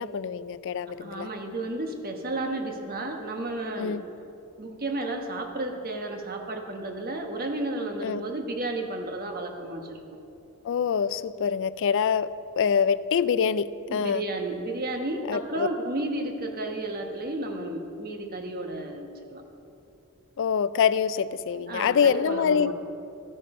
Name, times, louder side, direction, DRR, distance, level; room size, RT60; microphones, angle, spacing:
voice 1, 0.0-1.3 3.8-4.0 8.0-8.2 10.6-12.3 12.6-14.2 15.3-15.7 20.4-22.7, left 7 dB, 55° left, 16 dB, 0.3 m, -25 dB
voice 2, 1.0-4.0 4.6-10.0 13.9-19.4 21.7-22.7, right 2 dB, 40° right, 4 dB, 1.2 m, -32 dB
12.5 x 9.3 x 5.4 m, 2.8 s
head